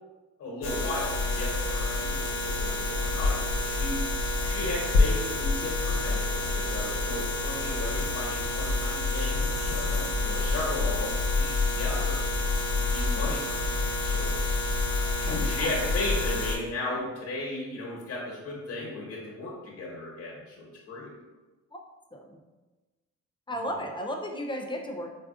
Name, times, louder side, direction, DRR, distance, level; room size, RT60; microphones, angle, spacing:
voice 1, 0.4-4.0 4.4-12.2 12.8-14.3 15.2-21.1, left 2 dB, 50° left, -3 dB, 1.0 m, -36 dB
sound 1, 0.6-16.6, left 3 dB, 85° left, 0.8 m, -28 dB
voice 2, 15.2-15.9 21.7-21.8 22.1-22.3 23.5-25.1, equal, 15° left, 2 dB, 0.4 m, -35 dB
4.3 x 2.4 x 2.4 m, 1.2 s
cardioid pair, 90°, 30 cm